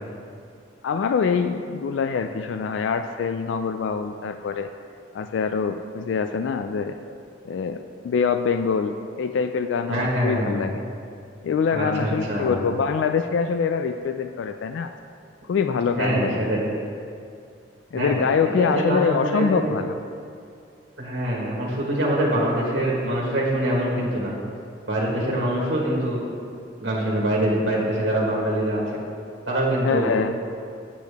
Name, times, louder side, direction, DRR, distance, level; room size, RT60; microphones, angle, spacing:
voice 1, 0.8-4.7 5.1-7.0 7.4-10.8 11.4-14.9 15.5-16.4 17.9-20.0 29.8-30.3, left 5 dB, 70° left, 8 dB, 0.3 m, -24 dB
voice 2, 9.9-10.6 11.7-12.6 15.9-16.7 17.9-18.2 18.5-19.6 21.0-24.3 24.9-26.2 26.8-28.8 29.5-30.1, right 1 dB, 65° right, -5 dB, 1.5 m, -24 dB
8.3 x 8.2 x 3.5 m, 2.4 s
head